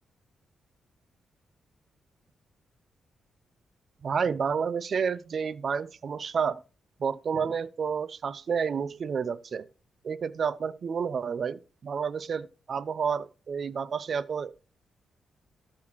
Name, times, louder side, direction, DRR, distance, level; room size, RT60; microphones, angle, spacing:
voice 1, 4.0-6.6 7.0-9.7 10.0-14.5, right 6 dB, 55° right, 0.6 m, -30 dB
13.5 x 5.8 x 3.0 m
cardioid pair, 65°, 0 cm